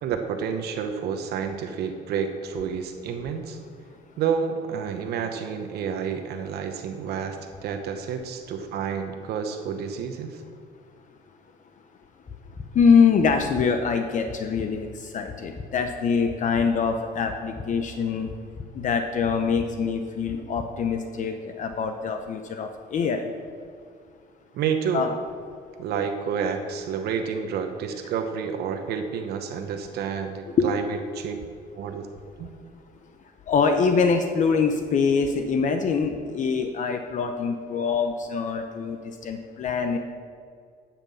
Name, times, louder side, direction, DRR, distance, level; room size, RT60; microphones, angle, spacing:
voice 1, 0.0-3.6 4.2-10.4 24.5-25.0 25.8-31.4 31.7-32.1 32.4-32.5, right 7 dB, 75° right, 6 dB, 0.9 m, -29 dB
sound 1, 12.3-12.7 13.3-13.7 14.3-14.7 15.3-15.7 16.3-16.7 17.3-17.7 18.3-18.7 19.3-19.7 20.3-20.7, left 5 dB, 25° left, 0.9 m, -38 dB
voice 2, 12.7-18.3 18.7-23.3 24.9-25.1 30.6-30.7 33.5-40.0, left 5 dB, 50° left, 6 dB, 0.8 m, -24 dB
11.0 x 5.9 x 6.9 m, 2.1 s
cardioid pair, 110°, 17 cm